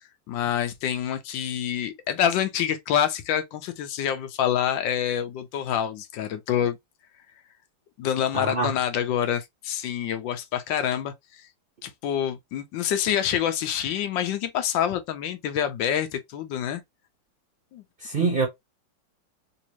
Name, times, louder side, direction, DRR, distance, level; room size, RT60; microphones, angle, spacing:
voice 1, 0.3-6.8 8.0-11.4 11.8-16.8 17.7-17.8, left 9 dB, 80° left, 1.3 m, -27 dB
voice 2, 8.3-8.8 18.0-18.5, right 4 dB, 65° right, 0.5 m, -25 dB
3.4 x 2.8 x 2.9 m
omnidirectional pair, 2.0 m